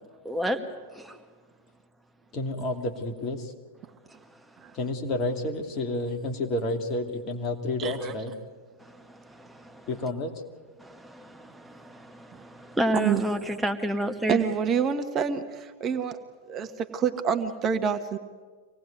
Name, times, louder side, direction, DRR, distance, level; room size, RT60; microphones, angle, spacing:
voice 1, 0.3-0.6 1.0-1.1 10.8-14.4, equal, 5° right, 4 dB, 2.0 m, -30 dB
voice 2, 2.3-3.5 4.7-8.3 9.9-10.3, left 2 dB, 35° left, 4 dB, 2.7 m, -30 dB
voice 3, 7.8-8.1 12.9-13.2 14.3-16.2 16.5-18.2, right 7 dB, 30° right, 7 dB, 1.4 m, -27 dB
25.5 x 18.5 x 9.4 m, 1.5 s
figure-of-eight pair, 95°, 0 cm